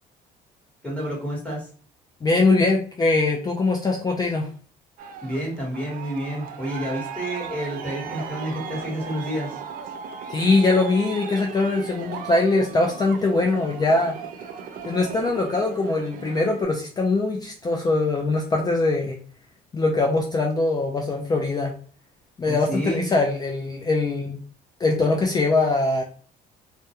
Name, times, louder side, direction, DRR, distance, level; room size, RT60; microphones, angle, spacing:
voice 1, 0.8-1.7 5.2-9.6 22.4-23.0, equal, 5° left, -3 dB, 1.1 m, -29 dB
voice 2, 2.2-4.5 10.3-14.2 14.8-19.2 19.7-21.7 22.4-24.4 24.8-26.0, left 3 dB, 25° left, 0 dB, 0.4 m, -22 dB
Aircraft, 5.0-16.6, right 6 dB, 55° right, 0.4 m, -37 dB
2.2 x 2.2 x 2.8 m, 0.43 s
cardioid pair, 110°, 17 cm